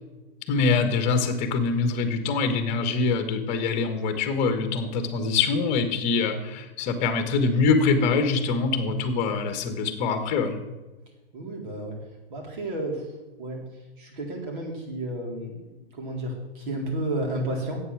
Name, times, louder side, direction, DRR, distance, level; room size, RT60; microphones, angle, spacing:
voice 1, 0.5-10.6, left 4 dB, 20° left, 8 dB, 1.4 m, -24 dB
voice 2, 11.3-12.0 12.3-13.0 13.4-13.6 14.0-15.6 16.0-17.8, right 1 dB, 55° right, 0 dB, 3.9 m, -31 dB
11.0 x 8.6 x 6.2 m, 1.1 s
hypercardioid pair, 150°, 31 cm